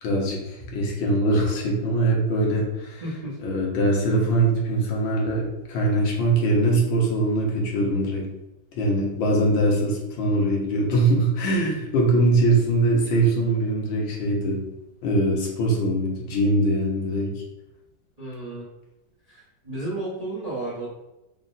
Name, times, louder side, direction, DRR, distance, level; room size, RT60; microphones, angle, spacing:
voice 1, 0.0-3.0 3.4-8.3 8.7-14.6 15.0-17.3, right 1 dB, 80° left, -1 dB, 1.6 m, -22 dB
voice 2, 3.0-3.4 18.2-18.7 19.3-20.9, right 2 dB, 35° right, -7 dB, 0.6 m, -32 dB
4.1 x 2.1 x 3.8 m, 0.97 s
omnidirectional pair, 2.2 m